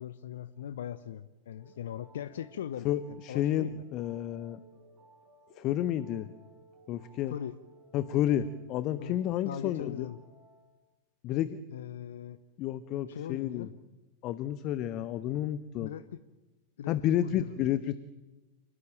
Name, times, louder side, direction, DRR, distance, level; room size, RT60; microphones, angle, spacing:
voice 1, 0.0-3.8 7.3-7.6 9.0-9.2 9.4-10.2 11.7-12.4 13.1-13.7 15.8-16.1 16.8-17.0 17.2-17.5, left 10 dB, 60° left, 16 dB, 0.9 m, -40 dB
sound 1, 1.6-10.8, right 3 dB, 30° right, 6.8 m, -59 dB
voice 2, 2.8-4.6 5.5-6.3 6.9-7.3 7.9-10.1 11.2-11.6 12.6-13.7 14.2-15.9 16.9-18.0, left 11 dB, 40° left, 14 dB, 1.1 m, -30 dB
28.5 x 19.5 x 8.9 m, 1.1 s
figure-of-eight pair, 90°, 0 cm